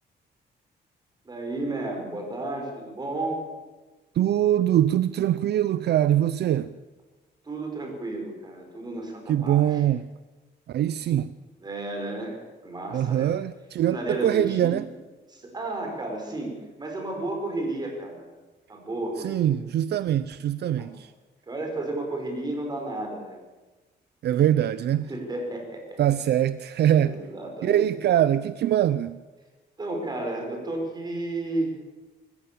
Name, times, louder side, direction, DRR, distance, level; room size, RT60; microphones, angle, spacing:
voice 1, 1.3-3.4 7.4-9.8 11.6-13.3 13.9-14.8 15.3-18.2 18.7-19.6 20.8-21.0 21.5-23.4 25.1-26.0 27.0-28.0 29.8-31.7, right 2 dB, 20° right, 5.6 m, -32 dB
voice 2, 4.1-6.7 9.3-10.1 10.7-11.3 12.9-14.8 19.2-21.1 24.2-25.1 26.0-27.2 27.6-29.2, right 11 dB, 65° right, 0.6 m, -23 dB
26.0 x 14.5 x 7.1 m
cardioid pair, 155°, 18 cm